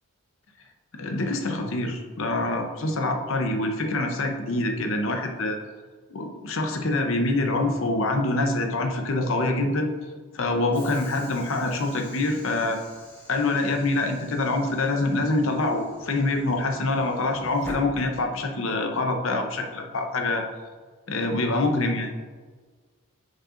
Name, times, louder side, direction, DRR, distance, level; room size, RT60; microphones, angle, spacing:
voice 1, 0.9-5.6 6.1-9.9 10.3-12.8 13.3-20.4 21.1-22.1, left 2 dB, 65° left, 4 dB, 0.8 m, -25 dB
Train / Sliding door, 10.7-18.7, equal, 10° left, 1.8 m, -46 dB
10.0 x 5.2 x 2.5 m, 1.5 s
head